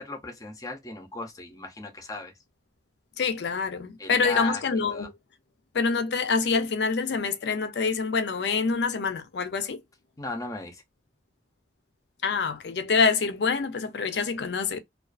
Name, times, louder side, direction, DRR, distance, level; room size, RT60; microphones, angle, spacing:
voice 1, 0.0-2.3 4.0-4.6 4.9-5.1 10.2-10.8, left 2 dB, 20° left, 0.5 m, -36 dB
voice 2, 3.2-5.1 5.7-9.8 12.2-14.8, left 5 dB, 75° left, 0.5 m, -26 dB
2.4 x 2.3 x 2.3 m
head